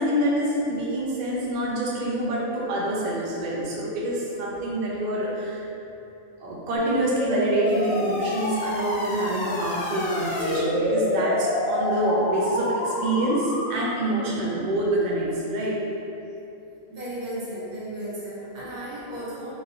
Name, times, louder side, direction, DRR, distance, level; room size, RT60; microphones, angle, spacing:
voice 1, 0.0-5.7 6.4-15.8 18.6-18.7, right 1 dB, 65° right, -5 dB, 0.4 m, -26 dB
sound 1, 6.8-14.2, left 1 dB, 80° left, 1.0 m, -28 dB
voice 2, 16.9-19.5, right 1 dB, 90° right, -9 dB, 1.4 m, -34 dB
3.0 x 2.6 x 2.7 m, 2.9 s
omnidirectional pair, 1.4 m